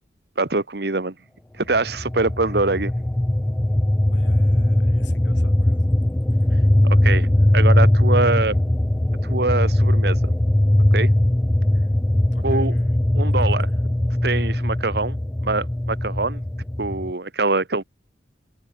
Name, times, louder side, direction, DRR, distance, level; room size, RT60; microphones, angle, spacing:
voice 1, 0.4-1.1 1.6-2.9 6.8-7.3 7.5-8.6 9.2-10.3 10.9-11.1 12.4-12.7 13.1-13.7 14.2-15.2 15.4-16.4 16.8-17.8, right 3 dB, 60° right, 1.3 m, -23 dB
sound 1, 1.7-17.1, left 1 dB, 10° left, 0.3 m, -20 dB
voice 2, 4.1-5.8 12.3-13.0, left 2 dB, 80° left, 5.3 m, -46 dB
open air
head